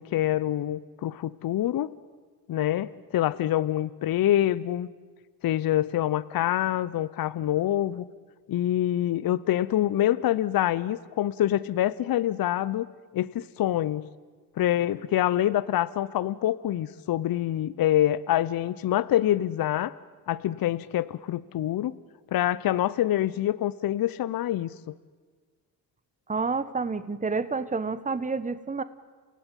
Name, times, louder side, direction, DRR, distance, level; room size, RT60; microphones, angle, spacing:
voice 1, 0.0-2.0 2.5-4.9 5.4-8.0 8.5-12.9 13.1-14.1 14.6-19.9 20.3-22.0 22.3-24.9, left 12 dB, 50° left, 16 dB, 0.8 m, -26 dB
voice 2, 26.3-28.8, right 4 dB, 15° right, 15 dB, 1.3 m, -29 dB
28.5 x 17.0 x 9.2 m, 1.4 s
supercardioid pair, 70°, 44 cm